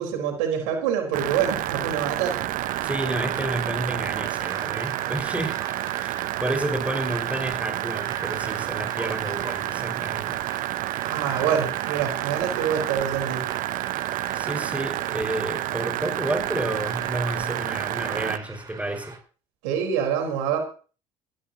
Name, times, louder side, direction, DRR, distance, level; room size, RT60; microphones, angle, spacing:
voice 1, 0.0-2.4 11.0-13.4 19.6-20.6, right 8 dB, 80° right, 3 dB, 4.3 m, -26 dB
sound 1, 1.1-18.4, right 15 dB, 60° right, 0.7 m, -29 dB
sound 2, 2.6-19.2, right 3 dB, 25° right, 7.6 m, -42 dB
voice 2, 2.8-5.6 5.9-10.4 14.3-19.1, right 1 dB, 10° right, 3 dB, 5.5 m, -30 dB
16.5 x 16.5 x 2.9 m, 0.38 s
hypercardioid pair, 75°, 16 cm